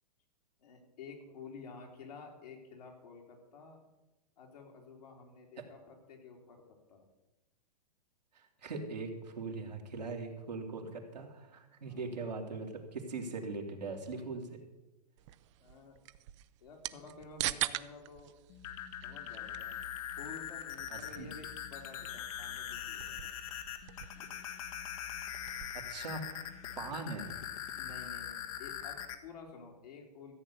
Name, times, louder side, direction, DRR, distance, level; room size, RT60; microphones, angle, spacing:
voice 1, 0.6-3.8 4.4-7.0 11.8-12.1 15.6-16.0 16.6-18.4 19.0-19.8 20.2-23.3 24.1-24.3 27.8-30.3, left 5 dB, 70° left, 1 dB, 3.7 m, -51 dB
voice 2, 8.3-14.6 20.9-21.3 25.7-26.2 26.8-27.3, right 3 dB, 85° right, 1 dB, 2.8 m, -41 dB
sound 1, 15.2-25.9, right 16 dB, 45° right, 0.6 m, -44 dB
sound 2, 18.5-29.2, left 9 dB, 55° left, 1.5 m, -42 dB
14.0 x 8.0 x 7.1 m, 0.99 s
hypercardioid pair, 120°, 21 cm